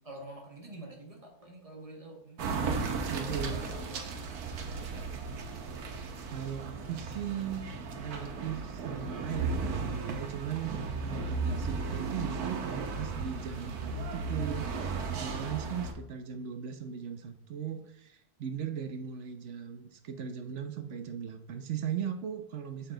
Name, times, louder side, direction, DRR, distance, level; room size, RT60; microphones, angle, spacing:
voice 1, 0.0-2.5 3.0-4.1 4.7-5.4, right 1 dB, 25° right, 0 dB, 1.5 m, -48 dB
sound 1, 2.4-15.9, right 4 dB, 85° right, 1.4 m, -35 dB
voice 2, 3.1-3.6 6.3-14.7 15.1-22.9, right 8 dB, 60° right, 8 dB, 0.9 m, -38 dB
6.9 x 5.5 x 3.8 m, 0.80 s
omnidirectional pair, 1.6 m